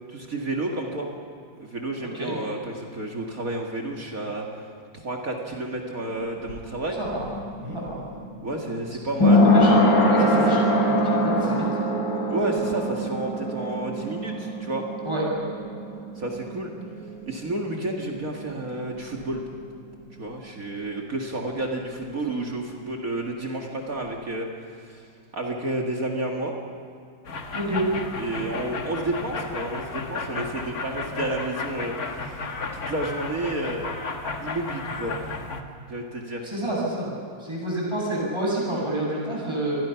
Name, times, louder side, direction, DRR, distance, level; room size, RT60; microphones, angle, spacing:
voice 1, 0.1-1.1 1.6-4.5 4.9-7.0 8.4-9.4 9.7-9.8 10.2-10.6 12.3-14.9 16.2-16.7 17.3-19.4 20.2-24.5 24.9-25.0 25.3-26.5 28.2-32.3 32.7-33.9 34.4-35.2 35.9-36.5, right 2 dB, 45° right, 0 dB, 2.4 m, -30 dB
voice 2, 2.0-2.3 7.0-7.3 7.7-8.0 9.4-11.7 15.0-15.2 27.5-27.8 36.4-37.1 37.4-39.8, right 1 dB, 15° right, -4 dB, 7.3 m, -29 dB
sound 1, 6.1-17.6 17.9-18.0, left 1 dB, 75° left, 4.3 m, -23 dB
sound 2, 27.2-35.6, left 3 dB, 50° left, 1.8 m, -33 dB
27.5 x 21.5 x 5.9 m, 2.4 s
omnidirectional pair, 2.1 m